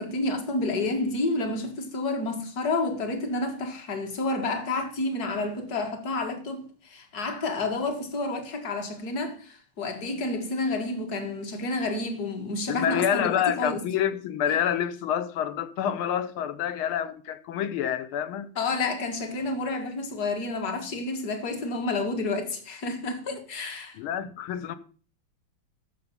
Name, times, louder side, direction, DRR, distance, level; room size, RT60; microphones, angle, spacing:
voice 1, 0.0-13.8 18.6-24.0, left 2 dB, 45° left, 2.1 m, -30 dB
voice 2, 12.7-18.5 24.0-24.8, left 9 dB, 75° left, 1.7 m, -27 dB
13.5 x 5.2 x 6.9 m
omnidirectional pair, 2.4 m